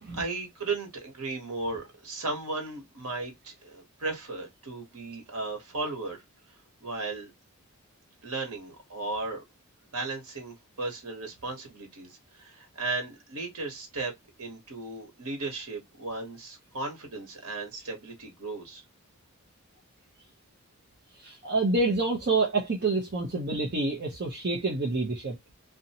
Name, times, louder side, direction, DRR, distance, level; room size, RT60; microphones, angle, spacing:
voice 1, 0.1-6.2 6.8-7.3 8.2-9.4 9.9-14.1 14.4-18.8, right 3 dB, 90° right, 1.1 m, -35 dB
voice 2, 21.2-25.4, right 3 dB, 45° right, 0.6 m, -27 dB
2.6 x 2.1 x 2.8 m
head